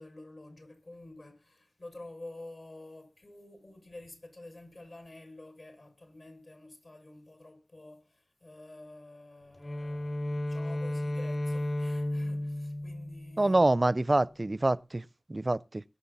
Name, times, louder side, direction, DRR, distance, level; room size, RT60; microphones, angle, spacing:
voice 1, 0.0-13.6, left 2 dB, 60° left, 6.3 m, -49 dB
Bowed string instrument, 9.5-13.9, left 1 dB, 35° left, 4.7 m, -34 dB
voice 2, 13.4-15.0 15.3-15.8, right 2 dB, 35° right, 0.5 m, -26 dB
22.5 x 7.6 x 4.1 m
wide cardioid pair, 60°, 0 cm